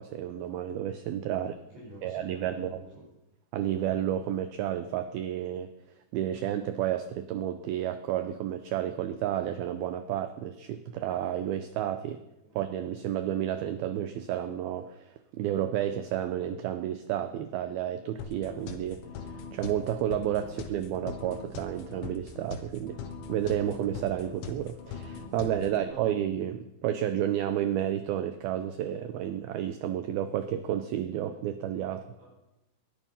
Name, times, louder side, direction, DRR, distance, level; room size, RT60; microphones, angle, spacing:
voice 1, 0.0-1.5 2.0-2.8 3.5-5.7 6.1-12.2 12.6-23.0 23.3-32.1, right 11 dB, 85° right, 10 dB, 2.1 m, -31 dB
voice 2, 1.3-3.0 12.4-12.5 20.4-20.5 25.7-26.1 32.2-32.3, right 1 dB, 60° right, -5 dB, 7.0 m, -49 dB
sound 1, 18.2-25.9, left 6 dB, 85° left, 3.8 m, -42 dB
20.0 x 11.5 x 5.5 m, 0.94 s
omnidirectional pair, 5.3 m